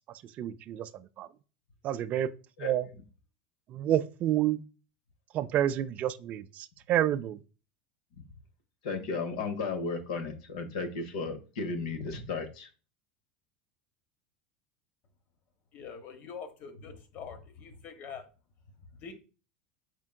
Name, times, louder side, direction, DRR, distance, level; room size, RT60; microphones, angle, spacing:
voice 1, 0.4-0.9 1.2-1.3 1.8-2.3 2.6-2.9 3.7-4.6 5.3-7.4, right 11 dB, 40° right, 0.3 m, -29 dB
voice 2, 8.8-12.7, left 4 dB, 85° left, 0.7 m, -34 dB
voice 3, 15.7-18.3 18.9-19.1, left 6 dB, 45° left, 0.8 m, -44 dB
4.4 x 3.5 x 2.2 m
supercardioid pair, 120°, 4 cm